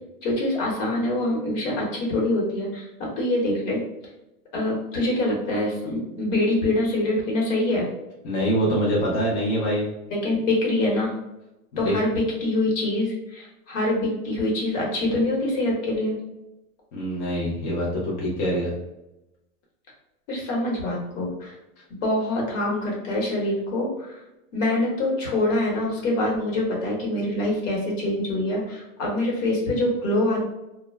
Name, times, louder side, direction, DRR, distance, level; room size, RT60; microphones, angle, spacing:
voice 1, 0.2-3.8 4.5-7.9 10.1-11.1 11.8-16.2 20.3-21.5 22.0-23.9 24.5-30.4, left 1 dB, 55° left, -2 dB, 1.2 m, -25 dB
voice 2, 8.2-9.9 11.7-11.9 16.9-18.7, equal, 30° left, -5 dB, 0.5 m, -24 dB
2.2 x 2.0 x 3.2 m, 0.93 s
hypercardioid pair, 140°, 45 cm